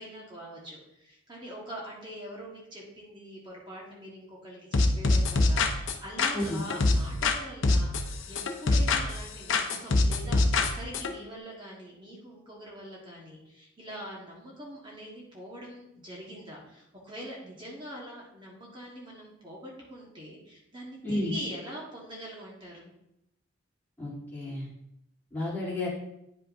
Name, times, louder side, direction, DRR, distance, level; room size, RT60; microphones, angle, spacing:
voice 1, 0.0-22.9, equal, 25° right, -4 dB, 1.5 m, -43 dB
sound 1, 4.7-7.4 7.6-9.2 9.5-11.1, left 2 dB, 75° left, 0.7 m, -25 dB
voice 2, 24.0-24.7 25.3-25.9, left 1 dB, 10° left, -10 dB, 2.9 m, -31 dB
9.4 x 5.5 x 2.7 m, 0.81 s
head